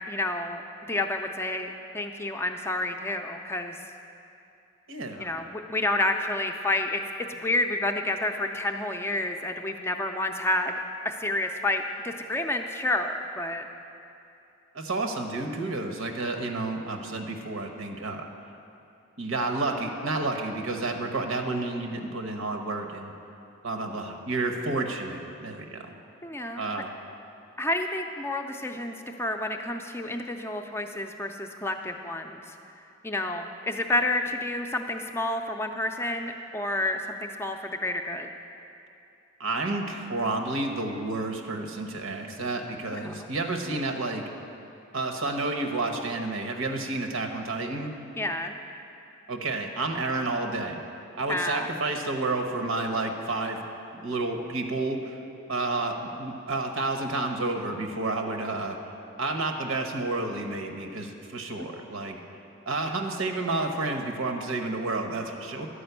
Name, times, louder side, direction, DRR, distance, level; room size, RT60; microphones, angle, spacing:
voice 1, 0.1-0.6 0.9-1.7 1.9-3.8 5.2-7.0 7.3-10.7 11.0-13.7 26.2-26.6 27.6-32.5 33.0-38.3 42.9-43.1 48.2-48.5 51.3-51.7, left 1 dB, 10° left, 4 dB, 0.4 m, -29 dB
voice 2, 4.9-5.4 14.7-18.3 19.2-23.1 23.6-25.9 26.5-26.9 39.4-44.2 44.9-48.0 49.3-50.8 51.2-53.6 53.9-55.2 55.5-58.8 59.2-62.2 62.7-65.7, right 2 dB, 85° right, 4 dB, 1.0 m, -30 dB
11.5 x 5.2 x 8.0 m, 2.7 s
head